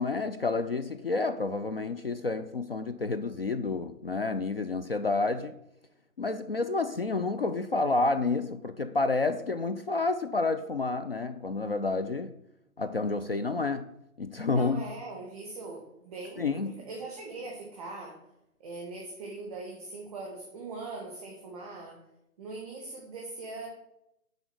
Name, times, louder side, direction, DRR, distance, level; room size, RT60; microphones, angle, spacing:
voice 1, 0.0-5.6 6.2-12.3 12.8-13.9 14.2-14.8 16.4-16.8, left 3 dB, 45° left, 0.5 m, -29 dB
voice 2, 14.5-18.3 18.6-22.0 22.4-23.7, right 3 dB, ahead, 0.6 m, -41 dB
10.5 x 4.0 x 7.6 m
figure-of-eight pair, 155°, 43 cm